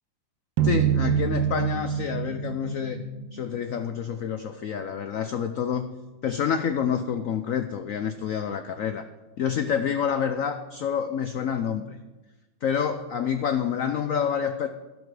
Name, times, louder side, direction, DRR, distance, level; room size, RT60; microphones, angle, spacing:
voice 1, 0.6-5.9 6.2-9.0 9.4-12.0 12.6-14.7, left 7 dB, 80° left, 9 dB, 0.7 m, -28 dB
sound 1, 0.6-3.8, right 8 dB, 80° right, 1.3 m, -26 dB
12.0 x 11.5 x 4.9 m, 1.1 s
omnidirectional pair, 2.1 m